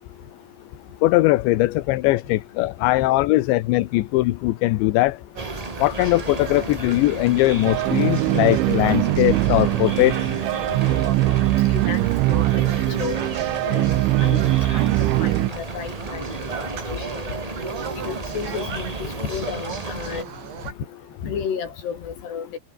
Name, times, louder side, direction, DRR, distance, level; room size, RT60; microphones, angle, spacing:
voice 1, 1.0-5.2 5.8-10.2, left 18 dB, 80° left, 3.1 m, -20 dB
sound 1, 5.4-20.2, right 2 dB, 25° right, 0.7 m, -33 dB
sound 2, 5.4-20.7, right 8 dB, 70° right, 5.9 m, -38 dB
sound 3, 7.7-15.5, right 20 dB, 90° right, 3.1 m, -21 dB
voice 2, 11.4-13.2 13.6-16.3 17.1-17.2 18.0-20.2 21.2-22.5, left 7 dB, 60° left, 6.2 m, -32 dB
omnidirectional pair, 5.4 m